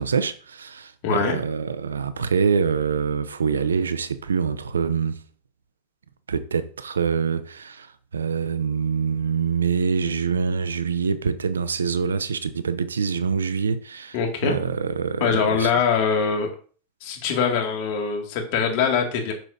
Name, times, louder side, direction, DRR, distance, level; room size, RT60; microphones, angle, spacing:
voice 1, 0.0-5.2 6.3-15.7, right 6 dB, 90° right, 0.6 m, -25 dB
voice 2, 1.0-1.4 14.1-14.6 15.2-16.5 17.0-19.3, left 6 dB, 60° left, 2.1 m, -23 dB
7.5 x 6.9 x 2.7 m
hypercardioid pair, 100°, 0 cm